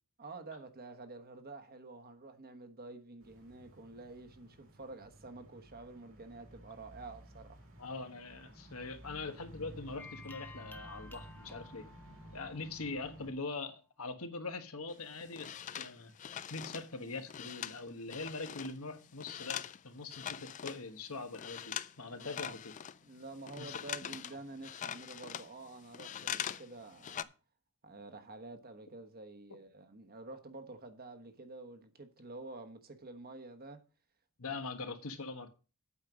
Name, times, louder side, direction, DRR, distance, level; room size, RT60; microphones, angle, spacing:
voice 1, 0.2-7.6 22.0-22.5 23.0-27.3 27.8-33.8, right 3 dB, 45° right, 1.2 m, -49 dB
sound 1, 3.2-13.3, right 1 dB, 60° right, 2.2 m, -54 dB
voice 2, 7.8-11.9 12.3-16.1 16.5-22.7 23.6-23.7 34.4-35.5, left 3 dB, 75° left, 1.3 m, -42 dB
sound 2, 10.0-13.5, left 3 dB, 10° left, 0.7 m, -54 dB
sound 3, 14.9-18.8 19.0-20.9 21.2-21.9 22.2-26.7 26.9-27.2, left 9 dB, 35° left, 0.3 m, -42 dB
8.5 x 5.5 x 6.2 m
head